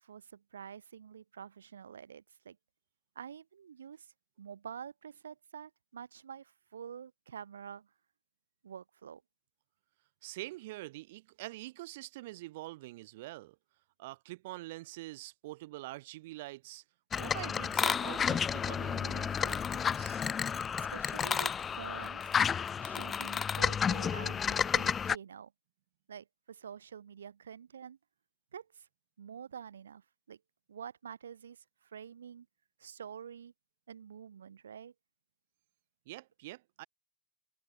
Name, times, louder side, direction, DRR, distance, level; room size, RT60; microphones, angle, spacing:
voice 1, 0.0-2.6 3.1-4.1 4.4-7.9 8.6-9.2 20.8-22.3 22.8-25.5 26.1-28.0 28.5-28.9 29.2-30.4 30.7-32.5 32.8-33.5 33.9-34.9, right 8 dB, 85° right, 2.7 m, -48 dB
voice 2, 10.2-13.6 14.0-16.8 17.2-20.2 36.0-36.9, right 19 dB, 65° right, 4.8 m, -45 dB
sound 1, 17.1-25.2, left 7 dB, 30° left, 1.6 m, -31 dB
hypercardioid pair, 90°, 0 cm